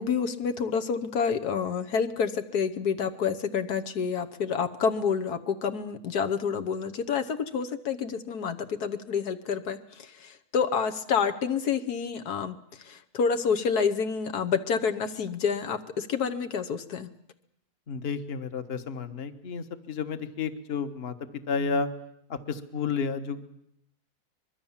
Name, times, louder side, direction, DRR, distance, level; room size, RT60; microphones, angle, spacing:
voice 1, 0.0-12.6 12.8-17.1, left 6 dB, 75° left, 8 dB, 1.6 m, -28 dB
voice 2, 17.9-21.1 21.5-21.9 22.3-23.4, left 5 dB, 40° left, 9 dB, 1.4 m, -31 dB
24.5 x 21.5 x 7.3 m, 0.75 s
omnidirectional pair, 1.7 m